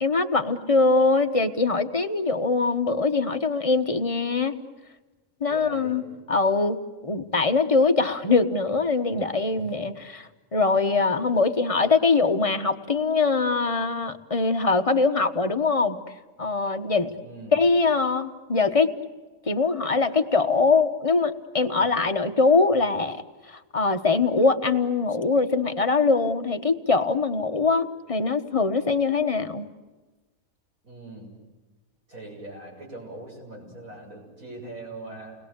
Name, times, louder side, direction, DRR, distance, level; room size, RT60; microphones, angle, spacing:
voice 1, 0.0-4.5 5.4-16.0 16.4-17.1 17.5-18.9 19.5-23.2 23.5-29.7, left 4 dB, 25° left, 6 dB, 1.2 m, -22 dB
voice 2, 5.5-6.0 9.5-9.7 17.2-17.6 30.8-31.3 32.1-35.4, right 2 dB, 75° right, -1 dB, 7.8 m, -41 dB
29.5 x 20.5 x 8.2 m, 1.2 s
omnidirectional pair, 1.5 m